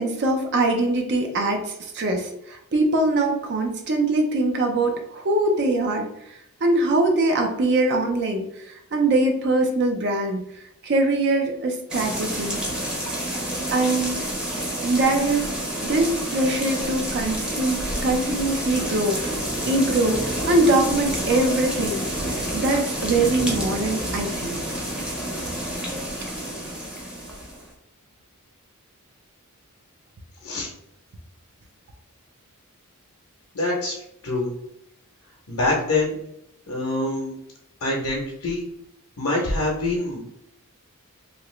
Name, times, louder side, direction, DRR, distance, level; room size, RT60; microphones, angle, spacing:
voice 1, 0.0-6.1 6.6-10.4 10.8-12.6 13.7-14.2 14.8-15.5 15.8-19.4 19.7-22.1 22.5-24.6 26.2-26.3, right 2 dB, 50° right, 3 dB, 0.5 m, -22 dB
sound 1, 11.9-27.7, right 1 dB, 5° right, 0.7 m, -29 dB
voice 2, 33.5-34.0 34.2-34.5 35.5-36.1 36.7-37.3 37.8-38.6 39.2-40.2, left 2 dB, 70° left, -4 dB, 0.8 m, -25 dB
2.8 x 2.4 x 3.1 m, 0.78 s
head